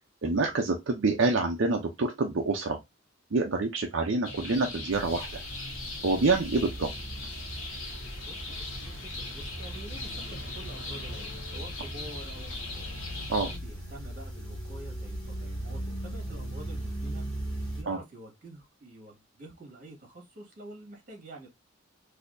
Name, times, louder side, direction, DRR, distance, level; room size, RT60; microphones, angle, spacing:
voice 1, 0.2-2.8 3.3-5.4 6.0-6.9 13.3-13.5 17.9-18.0, right 3 dB, 65° right, 0.6 m, -27 dB
sound 1, 4.2-13.6, left 2 dB, 80° left, 1.2 m, -39 dB
sound 2, 4.9-17.8, right 1 dB, 5° left, 2.4 m, -39 dB
voice 2, 8.2-12.9 13.4-17.3 17.7-21.5, right 1 dB, 45° right, 1.8 m, -48 dB
4.1 x 2.7 x 2.5 m
head